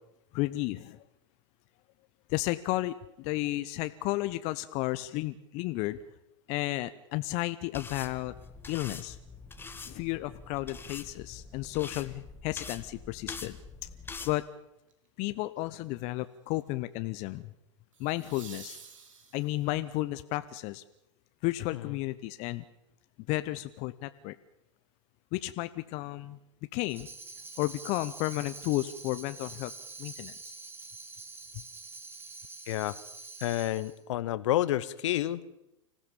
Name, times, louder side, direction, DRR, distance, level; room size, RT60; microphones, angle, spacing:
voice 1, 0.3-1.0 2.3-6.0 6.5-8.3 8.7-9.2 9.9-13.6 14.2-14.5 15.2-17.5 18.0-18.8 19.3-20.8 21.4-22.6 23.3-24.3 25.3-26.4 26.7-27.1 27.6-29.7 30.0-30.5, left 18 dB, 45° left, 12 dB, 0.8 m, -33 dB
sound 1, 7.7-14.3, left 4 dB, 15° left, 1.6 m, -44 dB
sound 2, 14.9-15.2 17.9-19.8 22.7-22.8, right 6 dB, 75° right, 3.7 m, -50 dB
Tambourine, 26.9-34.0, right 3 dB, 15° right, 2.2 m, -46 dB
voice 2, 33.4-35.4, left 14 dB, 65° left, 17 dB, 1.1 m, -29 dB
25.5 x 16.0 x 7.0 m, 0.87 s
hypercardioid pair, 110°, 17 cm